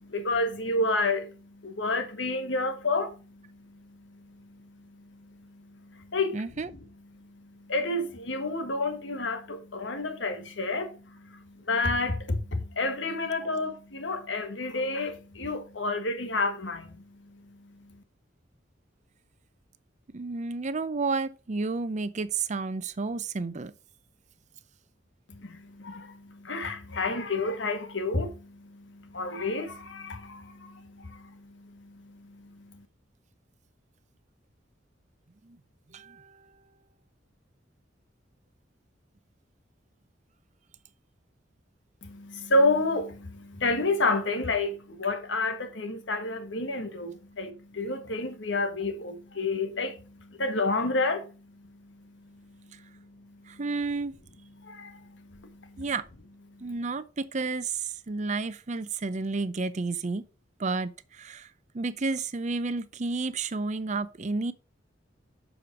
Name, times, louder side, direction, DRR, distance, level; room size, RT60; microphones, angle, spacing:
voice 1, 0.0-3.8 4.1-4.7 5.2-6.4 7.2-16.9 17.3-17.4 25.3-32.8 42.0-51.3 52.3-52.4 54.6-55.8, left 2 dB, 70° left, 1.5 m, -30 dB
voice 2, 6.3-6.7 20.1-23.7 35.4-35.6 35.9-36.5 53.5-54.2 55.8-56.0 56.6-60.2 60.6-61.5 61.7-64.5, right 3 dB, 40° right, 0.6 m, -31 dB
6.8 x 5.0 x 5.9 m
head